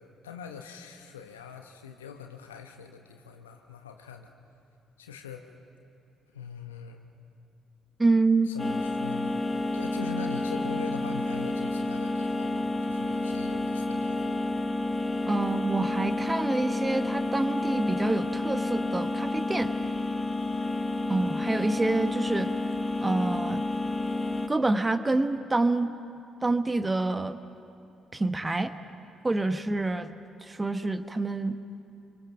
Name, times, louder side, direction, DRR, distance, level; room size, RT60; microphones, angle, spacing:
voice 1, 0.0-4.3 5.0-5.5 6.3-7.0 8.4-9.4 9.7-14.4, left 6 dB, 85° left, 5 dB, 1.2 m, -43 dB
voice 2, 8.0-8.5 15.3-19.7 21.1-22.5 23.0-23.6 24.5-25.9 26.4-27.4 28.1-28.7 29.2-30.1 30.5-31.6, right 2 dB, 20° right, 10 dB, 1.2 m, -27 dB
sound 1, 8.6-24.5, left 2 dB, 20° left, 1.2 m, -30 dB
28.0 x 24.5 x 6.0 m, 2.7 s
figure-of-eight pair, 45°, 0 cm